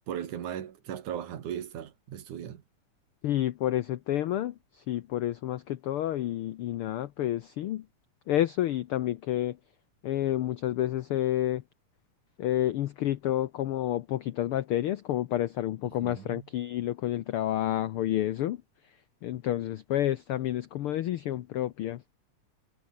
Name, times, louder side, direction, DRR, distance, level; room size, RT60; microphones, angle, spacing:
voice 1, 0.1-2.6 16.0-16.5, right 10 dB, 80° right, 3.3 m, -37 dB
voice 2, 3.2-7.9 8.3-9.6 10.0-11.6 12.4-22.0, left 13 dB, 85° left, 1.2 m, -30 dB
omnidirectional pair, 3.5 m